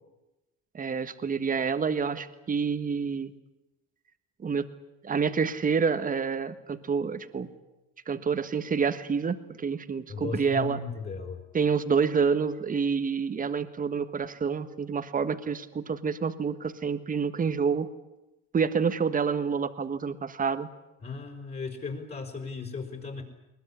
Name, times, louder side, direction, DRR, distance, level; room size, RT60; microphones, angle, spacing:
voice 1, 0.7-3.3 4.4-4.7 5.0-7.5 8.1-10.8 11.5-17.9 18.5-20.7, right 6 dB, 25° right, 10 dB, 1.5 m, -28 dB
voice 2, 10.1-11.4 21.0-23.2, left 4 dB, 30° left, 2 dB, 4.7 m, -36 dB
21.5 x 20.0 x 9.9 m, 1.0 s
cardioid pair, 110°, 31 cm